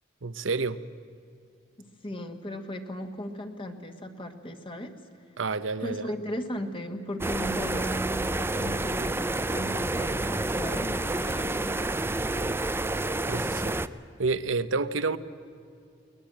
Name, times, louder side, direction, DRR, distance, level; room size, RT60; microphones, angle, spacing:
voice 1, 0.2-0.8 5.4-6.1 12.4-12.6 13.3-13.8 14.2-15.2, right 4 dB, 85° right, 0.9 m, -29 dB
voice 2, 1.8-4.9 5.8-11.7, equal, 30° left, 1.6 m, -36 dB
sound 1, 7.2-13.9, right 2 dB, 10° right, 0.5 m, -29 dB
21.5 x 19.5 x 8.9 m
head